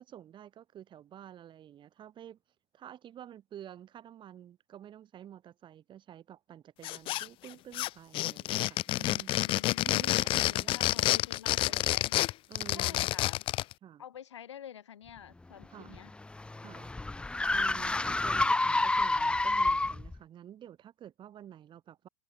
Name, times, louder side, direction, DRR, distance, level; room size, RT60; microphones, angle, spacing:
voice 1, 0.0-2.4 2.7-9.3 9.8-10.9 11.7-11.9 12.5-13.1 13.8-14.0 15.7-16.0 16.6-16.9 17.5-22.1, right 10 dB, 35° right, 2.1 m, -50 dB
sound 1, 6.8-7.5 7.7-13.7, left 17 dB, 40° left, 0.4 m, -29 dB
voice 2, 9.4-10.1 10.4-12.2 12.7-13.5 14.0-16.1, left 9 dB, 90° left, 2.1 m, -48 dB
sound 2, 15.6-20.2, left 2 dB, 5° left, 0.8 m, -29 dB
hypercardioid pair, 105°, 14 cm